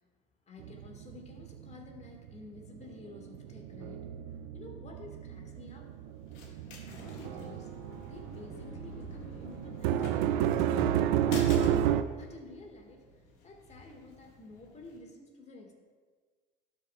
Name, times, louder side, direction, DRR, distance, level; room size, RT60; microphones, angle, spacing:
voice 1, 0.5-5.9 6.8-7.7 8.1-10.7 11.1-11.9 12.1-13.1 13.4-15.7, left 3 dB, 30° left, 2 dB, 1.8 m, -51 dB
sound 1, 0.6-2.3 2.6-12.0, right 10 dB, 75° right, 0.5 m, -31 dB
sound 2, 5.4-15.0, left 2 dB, 70° left, 1.8 m, -46 dB
12.0 x 6.5 x 2.4 m, 1.5 s
supercardioid pair, 80°, 21 cm